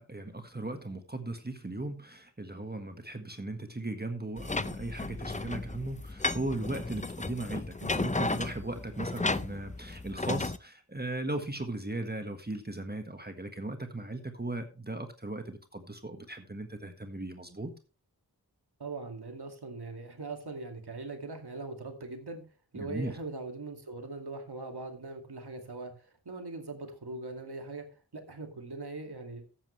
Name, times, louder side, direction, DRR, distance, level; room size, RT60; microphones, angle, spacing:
voice 1, 0.0-17.7 22.8-23.2, right 2 dB, 25° right, 6 dB, 1.5 m, -37 dB
sound 1, 4.4-10.6, left 3 dB, 20° left, 0.6 m, -34 dB
voice 2, 18.8-22.4 22.7-27.9 28.1-29.4, right 3 dB, 80° right, 4 dB, 2.3 m, -41 dB
13.5 x 9.4 x 3.2 m, 0.33 s
wide cardioid pair, 45°, 39 cm